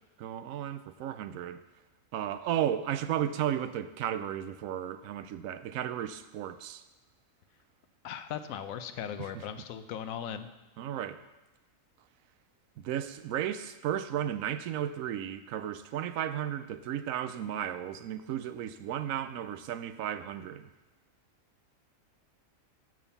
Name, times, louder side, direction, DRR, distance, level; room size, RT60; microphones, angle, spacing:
voice 1, 0.2-1.6 2.1-6.8 9.2-9.4 10.8-11.2 12.8-20.7, right 10 dB, 80° right, 12 dB, 1.0 m, -34 dB
voice 2, 8.0-10.5, left 9 dB, 85° left, 10 dB, 1.0 m, -38 dB
7.2 x 6.2 x 6.9 m, 1.1 s
omnidirectional pair, 1.4 m